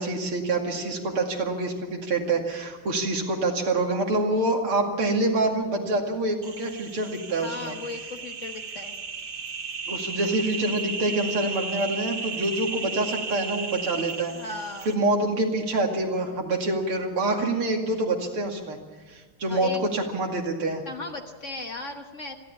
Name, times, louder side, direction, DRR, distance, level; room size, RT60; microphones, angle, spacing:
voice 1, 0.0-7.7 9.9-14.3 14.8-18.8 19.1-20.8, right 2 dB, 85° right, 2 dB, 3.2 m, -26 dB
sound 1, 6.4-15.0, right 4 dB, 55° right, 2.1 m, -35 dB
voice 2, 7.4-9.0 14.3-14.9 19.5-19.9 20.9-22.4, left 3 dB, 40° left, 4 dB, 1.4 m, -36 dB
27.5 x 11.5 x 8.6 m, 1.4 s
omnidirectional pair, 2.3 m